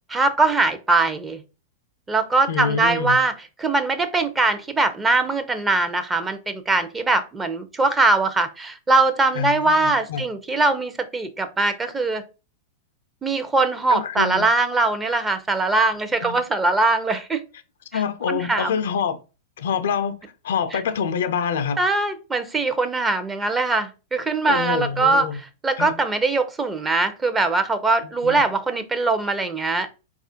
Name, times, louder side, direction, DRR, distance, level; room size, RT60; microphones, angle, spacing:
voice 1, 0.1-1.4 2.1-3.3 3.6-12.2 13.2-17.4 17.9-18.0 18.3-18.8 20.7-20.8 21.8-25.3 25.6-29.9, right 3 dB, 15° right, 0.5 m, -21 dB
voice 2, 2.5-3.2 9.3-10.2 13.9-14.5 16.2-16.4 17.9-19.2 19.6-20.2 20.4-21.8 24.5-25.4 25.8-25.9 28.2-28.4, left 6 dB, 70° left, 0.4 m, -26 dB
4.1 x 2.4 x 2.7 m
hypercardioid pair, 105°, 0 cm